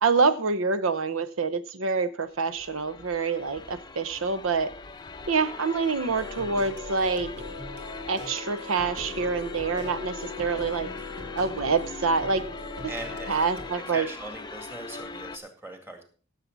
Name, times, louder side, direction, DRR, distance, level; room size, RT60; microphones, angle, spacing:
voice 1, 0.0-4.7 5.3-7.3 8.1-10.9 11.4-12.5 13.3-14.1, right 4 dB, 80° right, 12 dB, 0.8 m, -26 dB
sound 1, 2.2-15.4, left 4 dB, 20° left, 0.6 m, -41 dB
sound 2, 6.1-13.7, left 3 dB, 55° right, 2.3 m, -40 dB
voice 2, 12.8-13.4 13.9-16.0, right 2 dB, 10° right, 4 dB, 2.2 m, -40 dB
16.0 x 7.5 x 4.0 m, 0.42 s
head